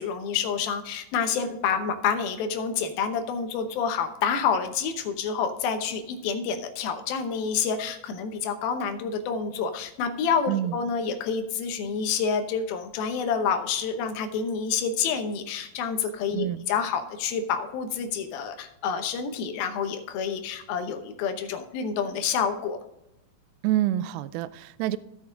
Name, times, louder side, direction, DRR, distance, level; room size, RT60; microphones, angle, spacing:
voice 1, 0.0-22.8, left 6 dB, 70° left, 7 dB, 2.6 m, -28 dB
voice 2, 10.5-10.8 16.3-16.7 23.6-25.0, right 13 dB, 90° right, 15 dB, 2.1 m, -27 dB
15.0 x 5.7 x 3.8 m, 0.84 s
omnidirectional pair, 4.8 m